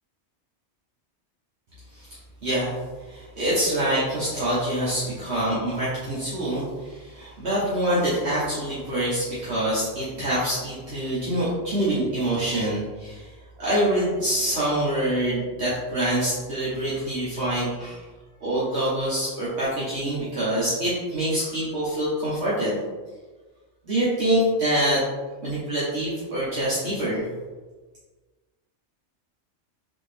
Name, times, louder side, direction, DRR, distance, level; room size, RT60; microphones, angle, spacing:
voice 1, 2.4-2.7 3.1-18.0 18.4-22.8 23.8-25.0 25.4-27.3, right 1 dB, 70° right, -10 dB, 1.3 m, -25 dB
4.0 x 2.7 x 3.3 m, 1.3 s
omnidirectional pair, 1.2 m